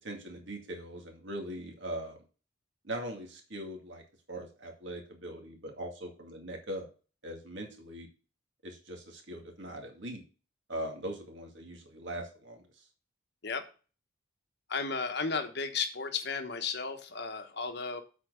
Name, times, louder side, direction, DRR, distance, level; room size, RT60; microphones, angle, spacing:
voice 1, 0.0-2.2 2.8-4.0 4.3-6.9 7.2-8.1 8.6-10.2 10.7-12.9, right 1 dB, 60° right, 2 dB, 2.1 m, -41 dB
voice 2, 14.7-18.0, left 5 dB, 50° left, 7 dB, 1.1 m, -34 dB
8.0 x 4.3 x 6.3 m, 0.36 s
head